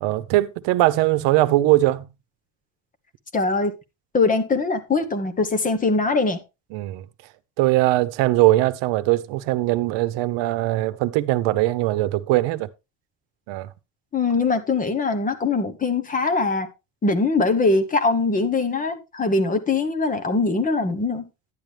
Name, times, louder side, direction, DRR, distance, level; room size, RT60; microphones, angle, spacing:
voice 1, 0.0-2.1 6.7-7.0 7.6-12.7 13.5-13.7, right 17 dB, 85° right, 0.9 m, -20 dB
voice 2, 3.3-3.7 4.1-6.4 14.1-16.7 17.0-21.3, left 3 dB, 20° left, 1.1 m, -22 dB
10.5 x 10.0 x 3.3 m
cardioid pair, 175°, 42 cm